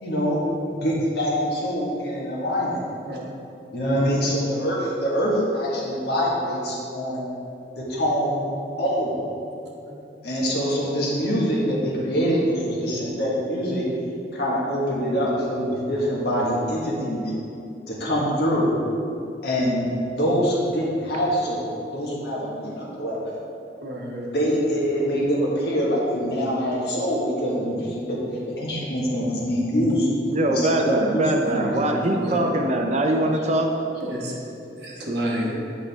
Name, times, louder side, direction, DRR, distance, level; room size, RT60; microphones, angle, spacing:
voice 1, 0.0-0.4 0.7-2.8 3.7-7.2 7.8-8.4 8.8-9.2 10.2-13.8 14.3-17.3 17.9-18.7 19.4-19.8 20.1-23.2 24.3-28.2 28.6-30.1 30.5-31.3, equal, 65° left, -4 dB, 1.5 m, -24 dB
voice 2, 23.8-24.3 31.5-32.6 34.0-34.3 34.8-35.6, right 1 dB, 65° right, -2 dB, 1.2 m, -30 dB
voice 3, 30.3-33.7, right 1 dB, 40° right, 3 dB, 0.5 m, -22 dB
8.5 x 5.0 x 3.5 m, 2.6 s
head